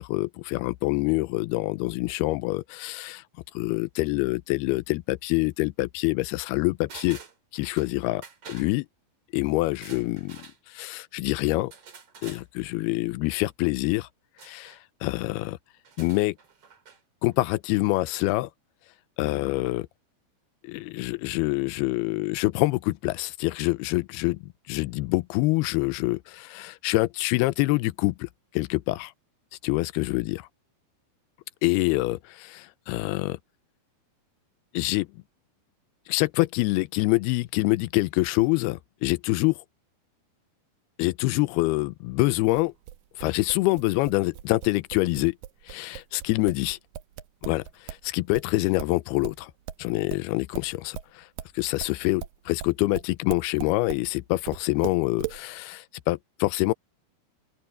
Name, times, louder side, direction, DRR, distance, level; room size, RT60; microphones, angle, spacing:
voice 1, 0.0-3.2 3.6-7.2 7.5-8.2 8.5-8.9 9.3-10.4 10.7-11.7 12.2-14.1 14.4-14.8 15.0-15.6 16.0-16.4 17.2-18.5 19.2-19.9 20.6-29.1 29.6-30.5 31.6-33.4 34.7-35.1 36.1-39.6 41.0-42.7 43.2-45.3 45.7-46.8 47.4-49.5 49.8-51.2 51.6-56.7, left 21 dB, 90° left, 2.6 m, -26 dB
sound 1, 6.9-7.9 8.2-8.7 9.7-10.6 11.7-12.4 14.4-14.8 15.8-17.0 17.3-17.4, right 6 dB, 40° right, 3.5 m, -47 dB
sound 2, 42.5-48.1 48.3-54.1 54.5-55.4, right 12 dB, 70° right, 2.6 m, -39 dB
open air
omnidirectional pair, 4.5 m